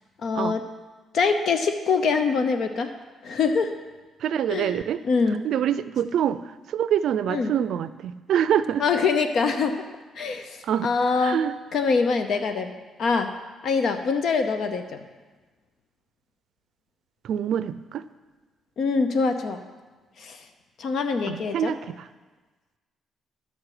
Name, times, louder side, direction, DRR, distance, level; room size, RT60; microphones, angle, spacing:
voice 1, 0.2-0.6 1.1-2.9 3.2-3.7 4.5-5.4 7.3-7.5 8.8-9.8 10.2-11.4 11.7-12.7 13.0-13.3 13.6-14.8 18.8-19.6 20.2-20.4 20.8-21.7, left 4 dB, 65° left, 8 dB, 0.7 m, -24 dB
voice 2, 4.2-5.0 5.4-6.4 6.7-8.8 10.6-10.9 11.2-11.6 17.2-18.0 21.3-22.0, right 9 dB, 70° right, 14 dB, 0.4 m, -25 dB
13.0 x 6.5 x 4.9 m, 1.3 s
cardioid pair, 90°, 0 cm